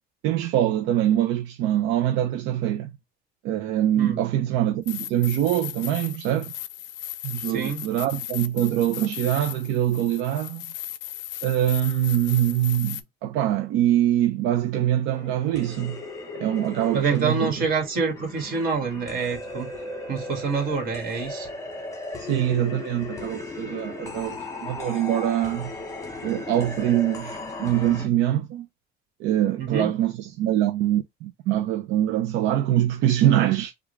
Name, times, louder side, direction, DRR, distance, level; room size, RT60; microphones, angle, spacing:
voice 1, 0.2-2.9 3.4-6.5 7.2-10.6 11.4-16.0 16.3-17.5 22.2-25.7 26.2-28.7 29.2-33.7, right 12 dB, 80° right, 0.6 m, -24 dB
sound 1, 4.9-13.0, left 13 dB, 80° left, 0.5 m, -36 dB
voice 2, 7.5-7.8 16.9-19.7 20.1-21.5 29.6-29.9, right 5 dB, 50° right, 1.7 m, -26 dB
sound 2, 15.1-28.1, left 2 dB, 15° left, 1.1 m, -37 dB
3.6 x 2.4 x 3.2 m
cardioid pair, 155°, 19 cm